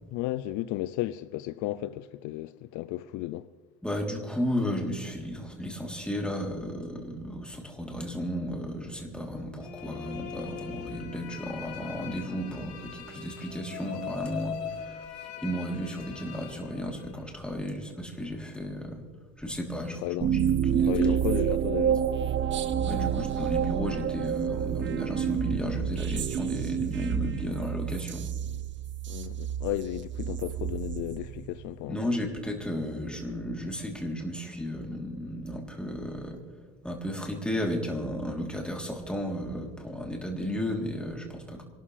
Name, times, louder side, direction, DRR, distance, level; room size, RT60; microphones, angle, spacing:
voice 1, 0.1-3.5 20.0-20.3 20.9-22.1 28.5-28.6 29.1-32.0, left 16 dB, 65° left, 0.6 m, -34 dB
voice 2, 3.8-15.1 15.4-19.0 19.4-20.0 20.5-20.9 22.8-28.2 31.9-36.4 36.8-41.6, equal, 5° left, 3.3 m, -34 dB
sound 1, 9.6-17.3, left 8 dB, 90° left, 1.8 m, -41 dB
sound 2, 20.2-31.8, right 9 dB, 35° right, 0.8 m, -29 dB
26.5 x 13.0 x 3.3 m
supercardioid pair, 90°, 32 cm